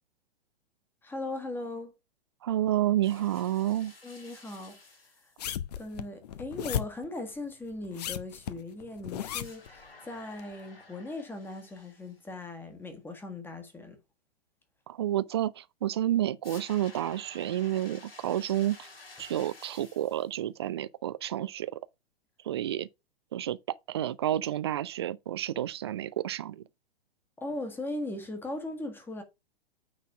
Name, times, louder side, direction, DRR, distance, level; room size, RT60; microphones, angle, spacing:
voice 1, 1.0-1.9 4.0-4.8 5.2-5.3 5.8-14.0 27.4-29.2, left 2 dB, 5° left, 1.5 m, -39 dB
voice 2, 2.4-3.9 14.9-18.9 19.2-21.7 22.4-22.9 23.3-23.6 23.9-26.6, right 12 dB, 25° right, 0.3 m, -30 dB
sound 1, 3.0-5.4 9.4-12.3 16.4-20.3, left 3 dB, 70° left, 2.9 m, -52 dB
sound 2, 5.4-7.1 7.8-9.7 10.4-10.5, left 10 dB, 40° left, 0.7 m, -35 dB
9.3 x 4.0 x 5.7 m
figure-of-eight pair, 110°, 31 cm